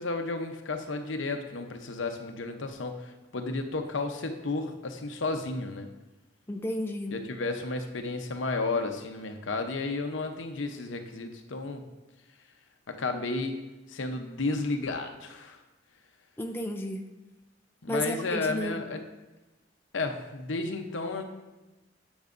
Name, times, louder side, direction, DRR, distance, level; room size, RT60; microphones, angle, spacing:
voice 1, 0.0-5.9 7.1-11.8 12.9-13.5 13.9-15.6 17.8-19.0 19.9-21.2, left 3 dB, 85° left, 6 dB, 0.8 m, -32 dB
voice 2, 6.5-7.2 16.4-17.0 17.9-18.8, left 1 dB, 10° left, 3 dB, 0.5 m, -32 dB
10.5 x 7.1 x 2.6 m, 1.1 s
head